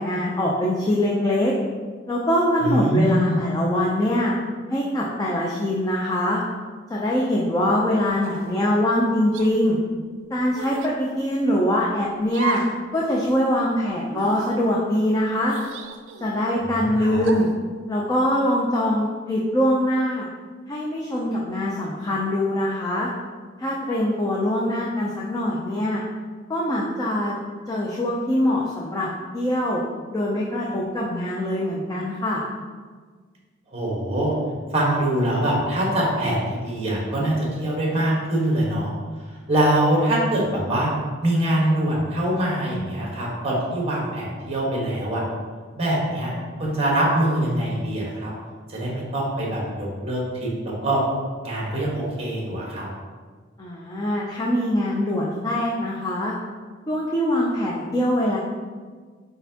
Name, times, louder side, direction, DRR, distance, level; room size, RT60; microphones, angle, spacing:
voice 1, 0.0-1.5 2.1-4.3 4.7-6.4 6.9-9.8 10.3-12.6 12.9-15.6 16.2-17.5 17.9-20.3 20.7-23.1 23.6-26.0 26.5-27.4 27.7-29.1 29.3-29.8 30.1-32.4 53.6-56.3 56.9-58.4, left 1 dB, 20° left, -4 dB, 0.4 m, -23 dB
voice 2, 2.6-3.3 16.8-17.2 33.7-34.3 34.7-38.9 39.5-40.9 41.2-45.2 45.7-46.3 46.6-48.3 48.7-51.0 51.4-52.9, right 1 dB, 30° right, -4 dB, 1.2 m, -23 dB
Anime Magical Girl Voice, 8.2-8.6 9.3-9.5 10.5-11.0 12.3-12.8 13.2-13.3 14.1-14.6 15.5-16.4 17.2-17.6, right 5 dB, 70° right, 0.4 m, -33 dB
4.4 x 4.1 x 2.8 m, 1.5 s
head